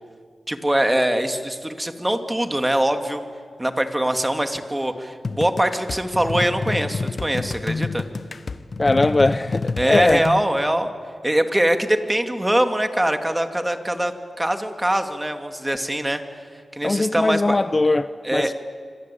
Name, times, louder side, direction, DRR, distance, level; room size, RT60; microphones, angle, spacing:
voice 1, 0.5-3.2 3.6-8.0 9.8-10.9 11.2-14.1 14.4-16.2 16.7-17.6 18.2-18.5, right 1 dB, 15° right, 2.5 m, -22 dB
sound 1, 5.2-10.4, left 4 dB, 60° left, 1.3 m, -28 dB
voice 2, 8.8-10.2 16.8-18.5, left 2 dB, 35° left, 0.7 m, -20 dB
27.5 x 25.0 x 8.6 m
cardioid pair, 65°, 0 cm